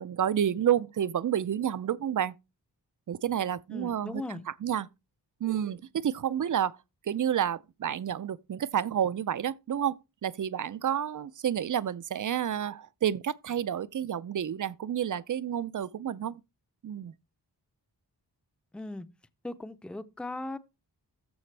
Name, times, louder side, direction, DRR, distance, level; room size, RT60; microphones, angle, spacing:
voice 1, 0.0-2.3 3.1-4.9 5.4-6.8 7.1-16.4 16.8-17.1, right 9 dB, 50° right, 0.5 m, -30 dB
voice 2, 3.7-4.4 18.7-19.1 19.4-20.6, left 2 dB, 5° left, 0.5 m, -38 dB
14.0 x 5.0 x 3.3 m
wide cardioid pair, 125°, 41 cm